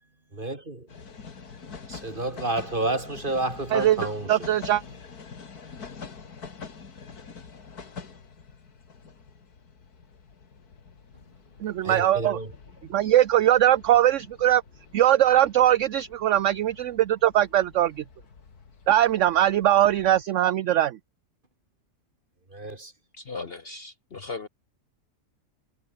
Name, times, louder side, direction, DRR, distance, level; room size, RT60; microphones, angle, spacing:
voice 1, 0.3-0.9 1.9-4.5 11.8-12.5 22.5-22.9, right 2 dB, 30° right, 3.7 m, -30 dB
sound 1, 0.9-20.2, left 5 dB, 75° left, 2.7 m, -46 dB
voice 2, 3.7-4.8 11.6-12.4 12.9-14.6 14.9-18.0 18.9-21.0, right 12 dB, 65° right, 0.9 m, -21 dB
voice 3, 23.1-24.5, left 4 dB, 40° left, 1.2 m, -37 dB
omnidirectional pair, 1.7 m